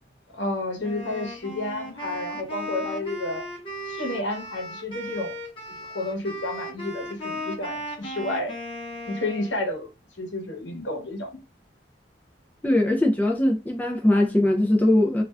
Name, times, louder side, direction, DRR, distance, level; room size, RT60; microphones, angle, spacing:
voice 1, 0.3-3.4 3.9-5.4 5.9-8.5 9.1-9.9 10.2-11.3, left 2 dB, 80° left, 0.9 m, -31 dB
Wind instrument woodwind instrument, 0.8-9.6, equal, 30° left, 0.8 m, -36 dB
voice 2, 12.6-15.2, left 1 dB, 10° left, 0.3 m, -21 dB
2.4 x 2.2 x 3.2 m
head